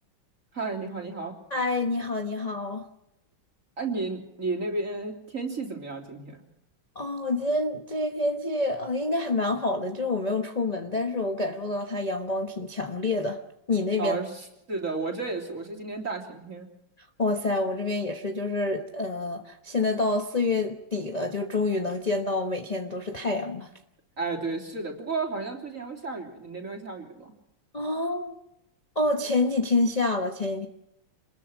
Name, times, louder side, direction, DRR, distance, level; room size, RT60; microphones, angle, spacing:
voice 1, 0.5-1.4 3.8-6.4 14.0-14.3 14.7-16.7 24.2-27.3, right 3 dB, 40° right, 1 dB, 3.7 m, -32 dB
voice 2, 1.5-2.9 6.9-13.4 13.7-14.2 17.2-23.7 27.7-28.3 28.9-30.7, left 2 dB, 25° left, 5 dB, 1.0 m, -27 dB
27.0 x 20.5 x 6.1 m, 0.83 s
omnidirectional pair, 2.2 m